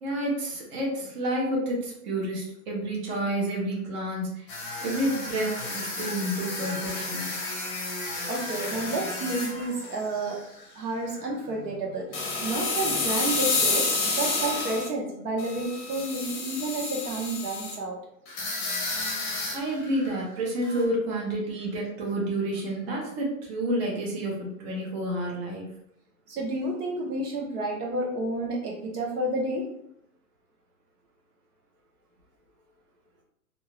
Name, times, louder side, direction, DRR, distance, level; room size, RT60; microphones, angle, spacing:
voice 1, 0.0-4.5 4.8-7.3 19.5-25.7, right 1 dB, 40° right, -2 dB, 1.0 m, -29 dB
sound 1, 4.5-10.6 11.0-11.2 12.1-14.9 15.4-17.7 18.3-20.2 20.6-20.8, left 3 dB, 25° left, 0.7 m, -31 dB
voice 2, 8.3-10.4 10.7-18.0 26.3-29.7, right 2 dB, 75° right, -1 dB, 1.0 m, -30 dB
2.7 x 2.3 x 3.0 m, 0.74 s
hypercardioid pair, 150°, 46 cm